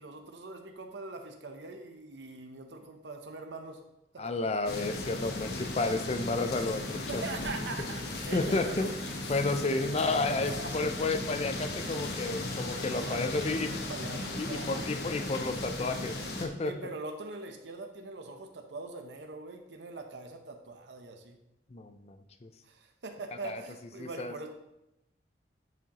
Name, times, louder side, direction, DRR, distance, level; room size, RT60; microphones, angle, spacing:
voice 1, 0.0-3.8 4.1-4.3 6.9-8.9 10.4-10.7 12.9-14.8 16.6-21.4 22.6-24.5, right 3 dB, 80° right, 5 dB, 0.8 m, -42 dB
voice 2, 4.2-7.3 8.3-8.9 9.3-13.8 14.4-16.8 21.7-22.5 23.4-23.6 24.0-24.3, left 3 dB, 35° left, 8 dB, 0.5 m, -31 dB
sound 1, 4.6-16.5, left 2 dB, 65° left, 1.1 m, -36 dB
10.5 x 5.1 x 3.0 m, 0.89 s
head